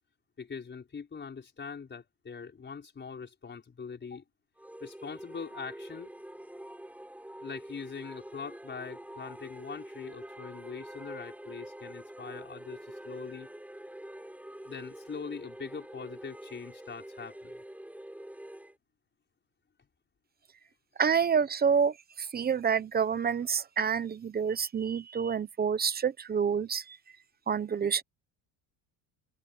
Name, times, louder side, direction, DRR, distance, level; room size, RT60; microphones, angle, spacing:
voice 1, 0.4-4.2 4.8-6.1 7.4-13.5 14.7-17.6, left 5 dB, 25° left, 5.3 m, -42 dB
sound 1, 4.6-18.8, right 1 dB, 5° right, 7.2 m, -46 dB
voice 2, 21.0-27.0 27.5-28.0, right 6 dB, 20° right, 0.8 m, -28 dB
cardioid pair, 150°, 46 cm